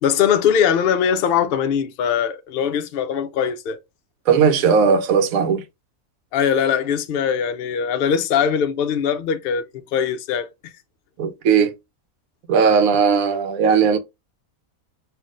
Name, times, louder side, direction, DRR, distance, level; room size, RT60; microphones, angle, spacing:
voice 1, 0.0-3.8 6.3-9.6 9.9-10.7, left 8 dB, 70° left, 0.5 m, -21 dB
voice 2, 4.3-5.6 11.2-11.7 12.5-14.0, right 6 dB, 75° right, 1.0 m, -17 dB
5.6 x 2.5 x 2.5 m
omnidirectional pair, 1.5 m